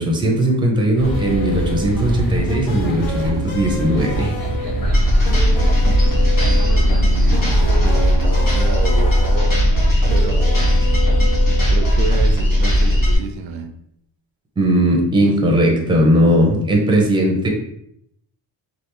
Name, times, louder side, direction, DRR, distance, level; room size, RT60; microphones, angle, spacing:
voice 1, 0.0-4.3 14.6-17.5, equal, 10° right, 0.5 m, -17 dB
sound 1, 1.0-11.8, right 1 dB, 80° left, 0.7 m, -26 dB
sound 2, 1.0-7.9, right 1 dB, 30° left, 1.4 m, -27 dB
sound 3, 4.8-13.1, equal, 45° left, 1.2 m, -16 dB
voice 2, 6.8-9.6 10.1-10.9 11.7-13.8, right 5 dB, 85° right, 0.6 m, -29 dB
3.4 x 2.4 x 3.0 m
wide cardioid pair, 145°, 44 cm